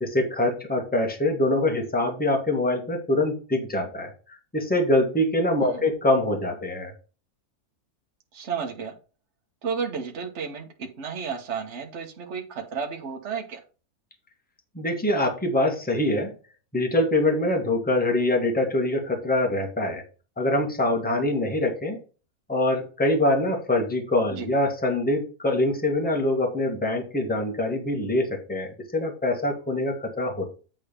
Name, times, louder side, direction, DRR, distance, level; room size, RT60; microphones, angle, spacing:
voice 1, 0.0-4.1 4.5-6.9 14.7-16.3 16.7-20.0 20.4-22.0 22.5-30.5, left 1 dB, 5° left, 2 dB, 1.6 m, -24 dB
voice 2, 8.3-8.9 9.6-13.6 24.3-24.5, right 6 dB, 50° right, 2 dB, 1.4 m, -32 dB
9.0 x 3.9 x 5.1 m, 0.35 s
omnidirectional pair, 1.6 m